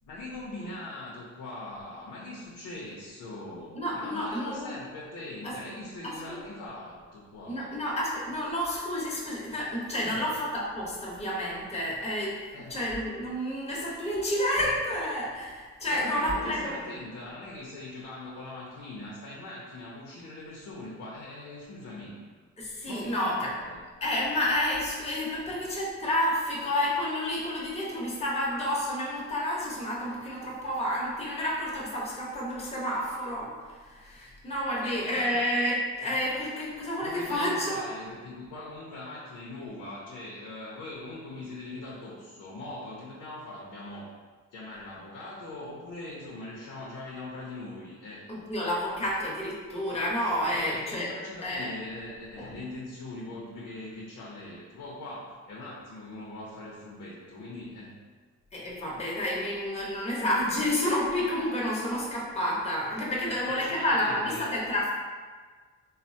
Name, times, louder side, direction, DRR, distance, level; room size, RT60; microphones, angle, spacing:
voice 1, 0.1-7.7 10.0-10.2 12.5-12.8 15.9-22.2 22.9-23.8 34.8-35.4 36.0-36.2 37.0-44.1 44.5-48.2 49.0-49.1 50.5-57.9 63.3-64.5, left 2 dB, 80° left, -5 dB, 0.6 m, -41 dB
voice 2, 3.7-4.7 5.4-5.6 6.0-6.4 7.4-16.8 22.6-23.6 24.0-37.9 48.3-51.1 51.4-51.7 52.4-52.6 58.5-64.9, left 1 dB, 20° left, -5 dB, 0.8 m, -30 dB
3.1 x 2.0 x 2.6 m, 1.5 s
supercardioid pair, 70°, 30 cm